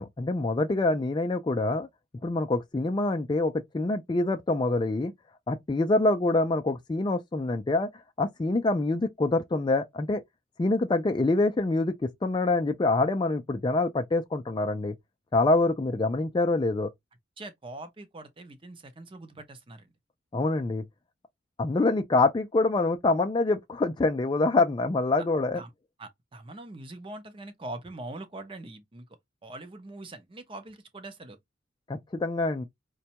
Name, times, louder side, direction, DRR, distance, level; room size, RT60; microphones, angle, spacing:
voice 1, 0.0-1.9 2.2-5.1 5.5-7.9 8.2-10.2 10.6-14.9 15.3-16.9 20.3-20.9 21.6-25.6 31.9-32.6, left 2 dB, 25° left, 0.3 m, -25 dB
voice 2, 17.4-19.9 25.6-25.7 26.0-29.1 29.4-31.4, right 2 dB, 25° right, 0.6 m, -42 dB
5.1 x 2.2 x 2.8 m
head